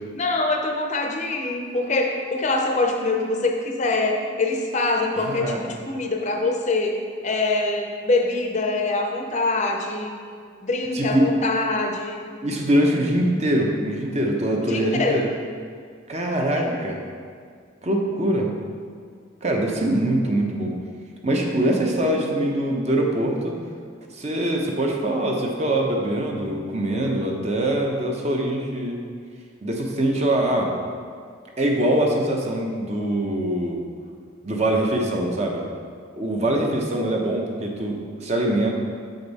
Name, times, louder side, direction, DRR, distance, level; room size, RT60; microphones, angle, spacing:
voice 1, 0.1-7.0 7.2-10.2 10.6-12.2 14.6-15.2 16.6-16.7, left 2 dB, 35° left, 2 dB, 0.6 m, -24 dB
voice 2, 5.1-5.6 10.9-11.3 12.4-15.3 16.1-17.0 17.8-18.5 19.4-20.7 21.2-23.6 24.1-29.0 29.6-30.7 31.6-33.8 34.4-35.6 36.1-38.7, right 1 dB, 35° right, 0 dB, 0.7 m, -23 dB
7.1 x 5.2 x 4.0 m, 2.1 s
head